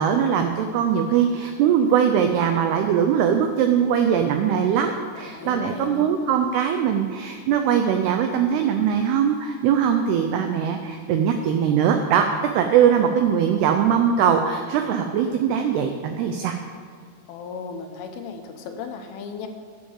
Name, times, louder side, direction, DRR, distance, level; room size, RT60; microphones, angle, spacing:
voice 1, 0.0-16.6, right 8 dB, 90° right, 6 dB, 2.3 m, -21 dB
voice 2, 5.1-6.1 17.3-19.5, left 5 dB, 85° left, 5 dB, 3.6 m, -35 dB
10.5 x 8.6 x 7.2 m, 2.1 s
omnidirectional pair, 5.5 m